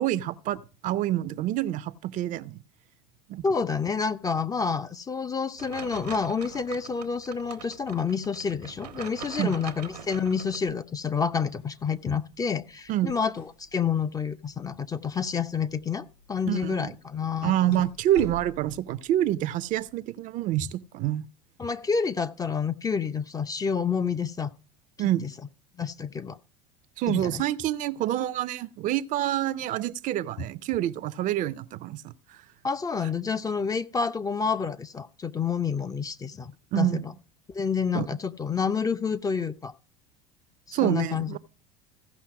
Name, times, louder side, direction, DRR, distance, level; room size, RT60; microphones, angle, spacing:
voice 1, 0.0-2.6 3.3-3.4 9.3-9.5 12.9-13.1 16.5-16.9 17.4-21.3 25.0-25.3 27.0-32.4 36.7-37.0 37.9-38.1 40.7-41.4, right 13 dB, 40° right, 0.5 m, -27 dB
voice 2, 3.4-17.8 21.6-24.5 25.8-26.4 27.1-27.4 32.6-37.1 37.5-39.7 40.7-41.4, left 6 dB, 20° left, 0.5 m, -29 dB
sound 1, 5.6-10.6, right 8 dB, 80° right, 1.0 m, -43 dB
sound 2, 5.9-19.9, left 3 dB, 70° left, 6.3 m, -52 dB
15.5 x 5.6 x 4.8 m
figure-of-eight pair, 75°, 20 cm